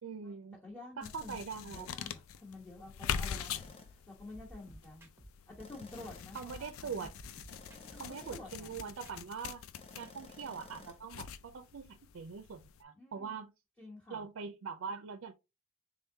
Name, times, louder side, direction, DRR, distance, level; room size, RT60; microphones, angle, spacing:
voice 1, 0.0-0.6 1.0-1.9 6.3-7.1 7.9-9.6 10.0-13.5 14.1-15.3, right 6 dB, 65° right, 0.4 m, -43 dB
voice 2, 0.6-5.1 5.5-7.1 7.7-8.7 12.9-13.4 13.8-14.3, left 2 dB, 5° left, 1.1 m, -50 dB
sound 1, 1.0-12.8, left 8 dB, 75° left, 0.4 m, -44 dB
sound 2, 1.7-2.0 3.6-4.1 5.6-6.4 7.5-8.6 9.8-11.0, left 3 dB, 30° left, 0.7 m, -54 dB
sound 3, 4.3-6.7 7.0-9.4, right 1 dB, 10° right, 0.7 m, -56 dB
3.6 x 3.6 x 2.7 m
head